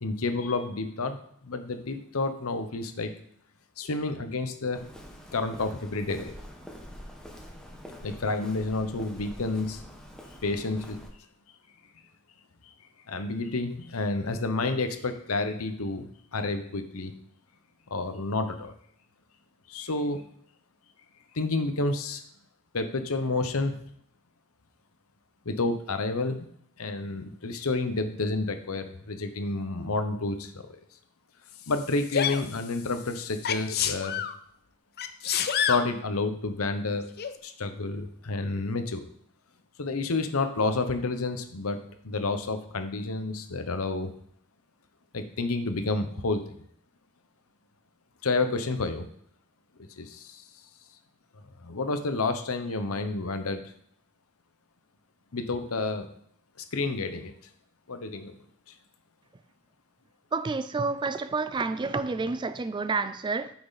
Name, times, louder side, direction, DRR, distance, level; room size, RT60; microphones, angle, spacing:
voice 1, 0.0-3.1 3.8-4.8 5.3-6.4 8.0-9.8 10.4-11.0 13.1-17.1 17.9-18.7 19.7-20.3 21.3-22.2 22.7-23.7 25.4-26.5 26.8-30.8 31.7-34.2 35.7-37.1 37.4-39.0 39.8-44.1 45.1-46.4 48.2-49.1 49.8-50.4 51.6-53.6 55.3-56.1 56.6-57.3 57.9-58.3, left 3 dB, 75° left, 0.9 m, -30 dB
Walk footsteps, 4.7-11.1, equal, 5° left, 1.1 m, -46 dB
Sneeze, 32.1-32.4 33.4-34.3 35.0-35.9 37.2-37.3, left 8 dB, 45° left, 0.6 m, -27 dB
voice 2, 60.3-63.5, right 4 dB, 20° right, 0.3 m, -29 dB
8.5 x 6.1 x 4.1 m
head